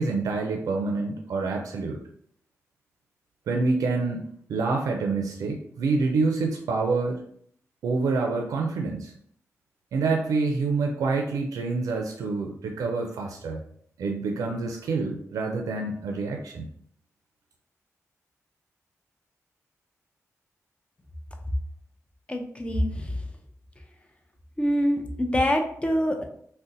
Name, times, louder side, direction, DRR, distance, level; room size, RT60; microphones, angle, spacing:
voice 1, 0.0-2.0 3.5-7.2 7.8-9.1 9.9-13.6 14.0-16.7, right 3 dB, 90° right, 2 dB, 0.4 m, -27 dB
voice 2, 22.3-23.2 24.6-26.2, equal, 20° left, 4 dB, 0.6 m, -25 dB
2.5 x 2.1 x 3.8 m, 0.64 s
cardioid pair, 60°, 6 cm